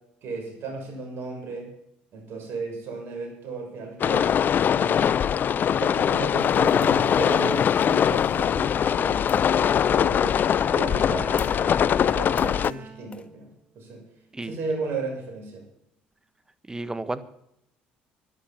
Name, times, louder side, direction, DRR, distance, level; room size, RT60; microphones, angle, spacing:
voice 1, 0.2-1.7 2.1-4.3 4.7-5.2 5.5-10.4 10.7-13.5 13.7-14.0 14.4-15.6, right 4 dB, 60° right, 3 dB, 6.6 m, -35 dB
sound 1, 4.0-12.7, left 8 dB, 45° left, 0.4 m, -22 dB
sound 2, 6.4-9.6 11.4-11.7 12.4-12.8 13.1-13.3, left 4 dB, 30° left, 1.4 m, -45 dB
Bowed string instrument, 9.9-13.5 14.0-14.4, right 4 dB, 30° right, 1.5 m, -43 dB
voice 2, 16.7-17.2, right 2 dB, 15° right, 12 dB, 1.4 m, -32 dB
12.5 x 11.5 x 7.4 m, 0.76 s
hypercardioid pair, 70°, 4 cm